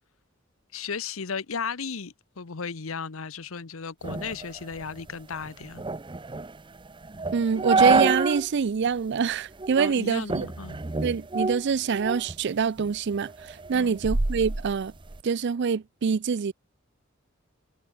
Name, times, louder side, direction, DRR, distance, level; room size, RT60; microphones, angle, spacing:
voice 1, 0.7-5.8 9.8-10.8 13.7-14.0, left 5 dB, 80° left, 1.0 m, -35 dB
sound 1, 4.0-8.5 8.9-9.0 9.6-10.0 10.3-12.4 12.8-15.2, right 3 dB, 25° right, 0.7 m, -28 dB
voice 2, 7.3-10.5 11.0-14.9 15.2-16.5, right 6 dB, 55° right, 0.4 m, -25 dB
head